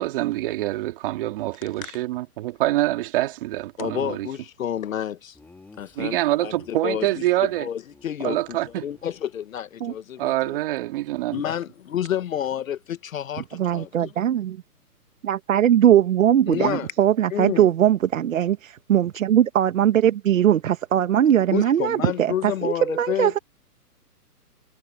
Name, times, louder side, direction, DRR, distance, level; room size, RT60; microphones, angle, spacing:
voice 1, 0.0-4.3 6.0-7.7 8.2-8.9 10.2-11.4, right 16 dB, 35° right, 2.9 m, -25 dB
voice 2, 3.8-5.4 5.8-7.1 7.6-10.6 11.3-14.1 16.5-16.9 17.3-17.7 21.5-23.4, left 10 dB, 60° left, 1.2 m, -30 dB
Laughter, 5.3-7.1 7.4-7.6 7.9-8.1 8.3-9.9, left 3 dB, 5° left, 2.7 m, -53 dB
voice 3, 13.5-14.6 15.2-23.4, right 10 dB, 55° right, 1.5 m, -20 dB
hypercardioid pair, 155°, 47 cm